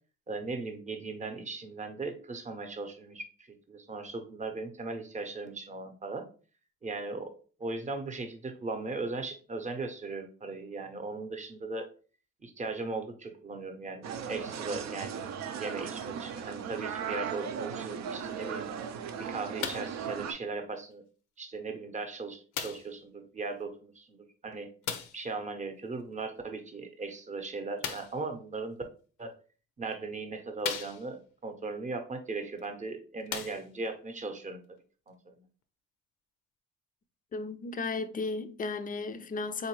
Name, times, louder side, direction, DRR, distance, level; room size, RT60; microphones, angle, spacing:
voice 1, 0.3-6.3 6.8-11.9 12.4-18.6 19.2-21.0 21.4-24.7 25.1-28.8 29.2-29.3 29.8-34.8 35.1-35.5, right 3 dB, 25° right, 0.7 m, -38 dB
sound 1, 14.0-20.3, right 7 dB, 65° right, 0.5 m, -37 dB
sound 2, 19.6-20.0 20.9-21.0 22.5-23.0 24.8-25.3 27.8-28.2 29.2-29.3 29.9-30.0 30.6-31.3 32.6-32.7 33.2-34.0 34.8-34.9, left 8 dB, 85° left, 0.5 m, -37 dB
voice 2, 37.3-39.7, left 3 dB, 30° left, 0.4 m, -34 dB
3.7 x 2.5 x 3.0 m
cardioid pair, 90°, 30 cm